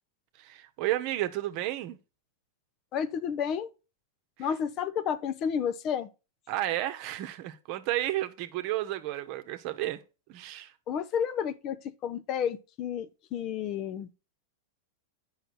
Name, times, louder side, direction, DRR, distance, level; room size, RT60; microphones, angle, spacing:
voice 1, 0.4-2.0 6.5-10.0 10.3-10.7, right 14 dB, 50° right, 0.9 m, -32 dB
voice 2, 2.9-3.7 4.4-6.1 10.9-11.8 12.0-14.2, left 8 dB, 40° left, 0.7 m, -31 dB
9.1 x 5.7 x 4.3 m
figure-of-eight pair, 95°, 0 cm